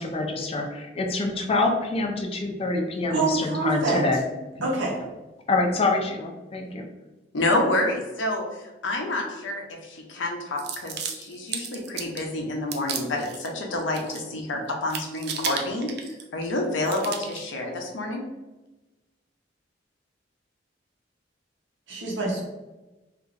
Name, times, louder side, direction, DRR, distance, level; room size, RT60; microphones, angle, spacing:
voice 1, 0.0-4.2 5.5-6.8, left 2 dB, 30° left, 1 dB, 0.4 m, -26 dB
voice 2, 3.1-4.0 4.6-5.0 21.9-22.4, right 3 dB, 90° right, -3 dB, 0.9 m, -26 dB
voice 3, 7.3-8.4 8.8-18.3, left 2 dB, 90° left, 2 dB, 0.6 m, -28 dB
sound 1, 10.6-12.3 12.7-13.5 13.8-14.4 14.7-16.5 16.9-17.5, right 7 dB, 60° right, 0.4 m, -34 dB
2.9 x 2.5 x 2.5 m, 1.1 s
head